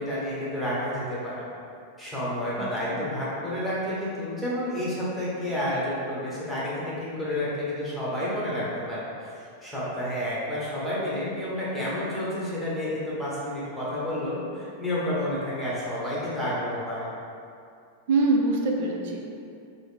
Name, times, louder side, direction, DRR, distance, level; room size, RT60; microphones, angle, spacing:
voice 1, 0.0-1.3 2.0-17.1, left 1 dB, 5° left, -9 dB, 1.0 m, -30 dB
voice 2, 2.6-3.0 18.1-19.2, right 2 dB, 60° right, -1 dB, 0.5 m, -24 dB
3.9 x 2.0 x 3.4 m, 2.4 s
hypercardioid pair, 130°, 0 cm